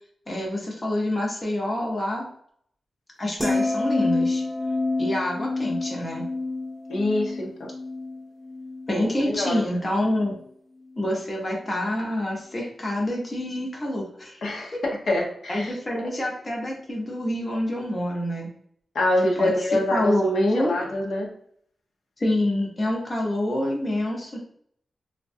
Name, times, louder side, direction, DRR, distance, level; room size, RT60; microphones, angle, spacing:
voice 1, 0.3-2.3 3.2-4.4 5.0-6.3 8.9-10.4 11.0-14.4 14.7-14.8 15.5-18.5 19.4-19.5 19.9-20.7 22.2-24.4, left 1 dB, 25° left, -1 dB, 0.7 m, -27 dB
sound 1, 3.4-9.7 10.0-10.3, left 2 dB, 10° right, 0.7 m, -28 dB
voice 2, 6.9-7.7 8.9-9.7 14.4-15.7 18.9-21.3, left 1 dB, 85° left, -1 dB, 0.7 m, -26 dB
3.5 x 2.2 x 2.6 m, 0.64 s
wide cardioid pair, 135°, 0 cm